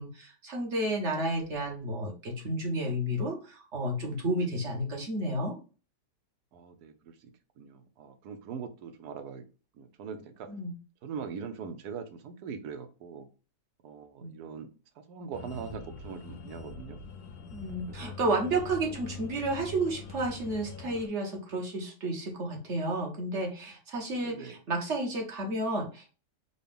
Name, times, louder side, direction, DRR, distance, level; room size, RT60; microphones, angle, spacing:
voice 1, 0.0-5.5 10.5-10.7 14.2-14.3 17.5-26.2, right 1 dB, 45° right, 0 dB, 1.3 m, -31 dB
voice 2, 6.5-9.4 9.7-10.5 11.0-13.3 13.8-14.7 15.0-17.0 17.9-18.2 18.9-19.0 24.2-24.6, right 6 dB, 70° right, 7 dB, 1.1 m, -42 dB
sound 1, 15.3-21.1, left 5 dB, 70° left, 1.0 m, -44 dB
3.9 x 2.3 x 3.4 m, 0.35 s
omnidirectional pair, 1.8 m